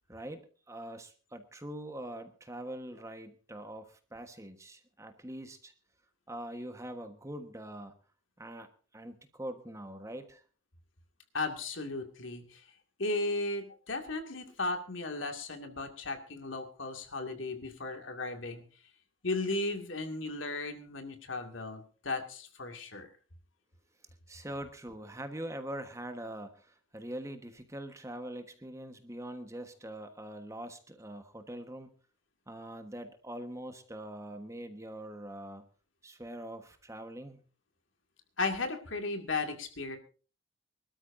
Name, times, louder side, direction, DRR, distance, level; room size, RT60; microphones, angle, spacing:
voice 1, 0.1-5.7 6.3-7.9 8.4-8.7 8.9-10.4 24.3-31.9 32.5-35.6 36.0-37.4, right 1 dB, 15° right, 7 dB, 1.3 m, -43 dB
voice 2, 11.3-12.6 13.0-18.6 19.2-23.1 38.4-40.0, left 3 dB, 80° left, 5 dB, 2.3 m, -35 dB
24.5 x 13.0 x 2.7 m, 0.37 s
head